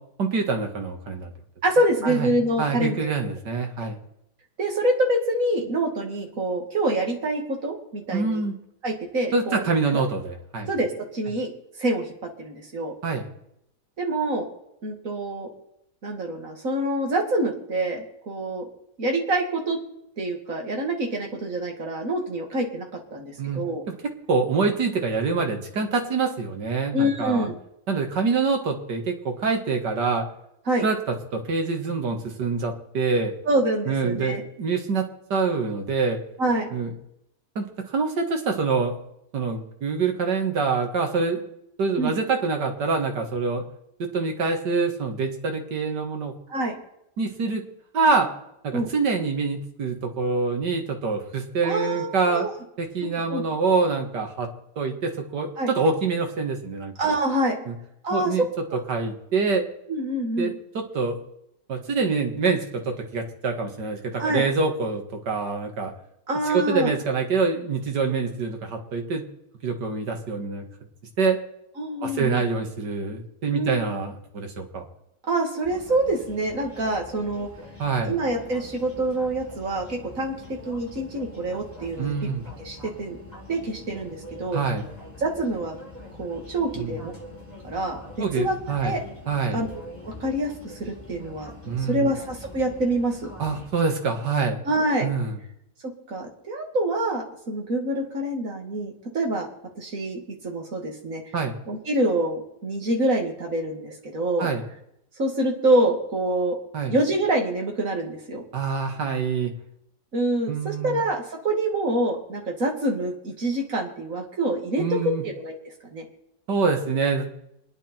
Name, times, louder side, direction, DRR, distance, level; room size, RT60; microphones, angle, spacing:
voice 1, 0.2-1.3 2.0-2.3 2.6-4.0 8.1-8.5 9.3-10.7 13.0-13.2 23.4-23.6 23.9-24.0 24.3-27.5 27.9-30.3 30.8-33.3 33.9-35.1 35.3-36.2 36.7-36.9 37.6-38.9 39.3-41.4 41.8-43.6 44.0-46.4 47.2-47.6 47.9-48.3 48.6-52.5 52.8-54.5 54.8-56.9 57.7-57.8 58.1-58.5 58.9-59.6 60.4-61.2 61.7-65.9 66.5-69.3 69.6-70.6 71.2-71.4 72.0-74.8 77.8-78.1 82.0-82.4 84.5-84.9 86.7-87.0 88.2-88.9 89.3-89.6 91.7-92.1 93.4-94.6 95.0-95.4 101.3-101.6 104.4-104.6 106.7-106.9 108.5-109.5 110.5-111.0 114.8-115.2 116.5-117.3, right 4 dB, 75° right, 3 dB, 2.5 m, -25 dB
voice 2, 1.6-3.1 4.6-8.4 8.8-9.6 9.9-10.0 10.7-11.5 11.8-12.1 12.4-12.9 14.0-14.5 14.8-15.5 16.0-18.6 19.0-19.8 20.2-22.9 23.1-23.8 26.9-27.5 30.7-30.8 33.5-34.4 36.4-36.7 42.0-42.1 46.5-46.7 48.7-48.9 51.6-52.5 53.3-53.4 55.6-55.7 57.0-57.6 58.0-58.3 59.9-60.5 64.2-64.5 66.3-66.9 71.8-72.4 73.5-73.8 75.3-77.5 78.0-82.1 82.6-83.2 83.5-84.6 85.2-85.8 86.2-87.1 87.6-88.0 88.4-88.6 88.8-89.0 89.5-89.7 90.0-91.5 91.8-93.3 94.7-95.1 96.1-99.5 99.8-101.2 101.7-104.5 105.2-106.6 106.9-108.4 110.1-115.6 115.9-116.0, right 1 dB, 50° right, 2 dB, 2.7 m, -26 dB
sound 1, 75.6-93.7, left 1 dB, 10° left, 5.1 m, -43 dB
27.0 x 10.0 x 4.5 m, 0.79 s
omnidirectional pair, 1.8 m